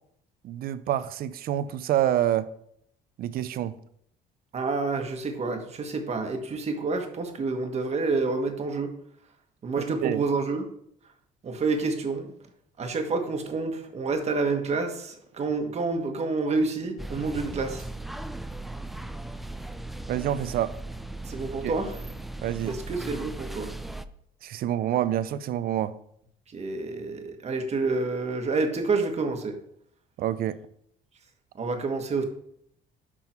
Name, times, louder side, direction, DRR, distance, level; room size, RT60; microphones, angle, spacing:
voice 1, 0.4-2.5 3.2-3.8 9.8-10.2 20.1-20.7 21.6-21.7 22.4-22.8 24.4-25.9 30.2-30.6, right 12 dB, 60° right, 0.5 m, -27 dB
voice 2, 4.5-8.9 9.6-10.7 11.4-12.3 12.8-17.8 21.3-22.0 22.6-23.7 26.5-29.6 31.5-32.2, right 3 dB, 40° right, 1.4 m, -28 dB
sound 1, 17.0-24.1, right 2 dB, ahead, 0.4 m, -37 dB
11.0 x 3.8 x 4.4 m
cardioid pair, 110°, 17 cm